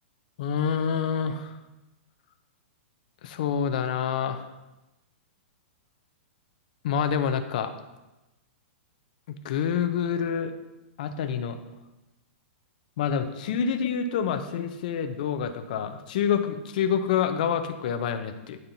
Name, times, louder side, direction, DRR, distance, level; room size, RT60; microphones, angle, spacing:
voice 1, 0.4-1.5 3.2-4.5 6.8-7.7 9.3-10.5 11.0-11.6 13.0-18.6, left 7 dB, 40° left, 9 dB, 0.5 m, -27 dB
10.5 x 4.3 x 2.6 m, 1.0 s
hypercardioid pair, 175°, 7 cm